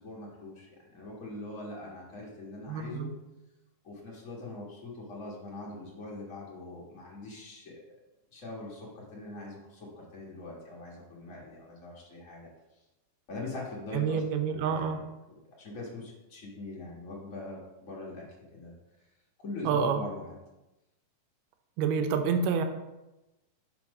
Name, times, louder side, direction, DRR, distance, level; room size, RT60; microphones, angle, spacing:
voice 1, 0.0-3.1 3.8-8.0 8.3-12.5 13.3-18.3 18.5-18.7 19.4-20.4, left 2 dB, 65° left, -4 dB, 0.8 m, -42 dB
voice 2, 2.7-3.1 13.9-15.0 19.7-20.0 21.8-22.6, right 6 dB, 75° right, 7 dB, 2.2 m, -28 dB
5.9 x 5.2 x 5.3 m, 0.99 s
omnidirectional pair, 4.0 m